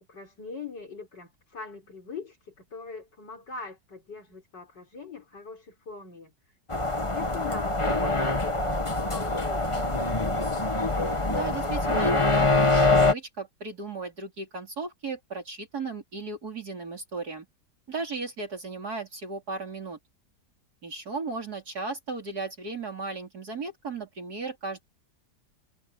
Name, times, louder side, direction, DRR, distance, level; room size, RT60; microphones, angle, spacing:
voice 1, 0.1-6.3 7.1-9.9, left 4 dB, 80° left, 5.1 m, -42 dB
sound 1, 6.7-13.1, left 2 dB, 20° left, 1.5 m, -24 dB
voice 2, 11.3-17.5 17.9-20.0 20.8-24.8, right 4 dB, 60° right, 3.9 m, -35 dB
omnidirectional pair, 1.9 m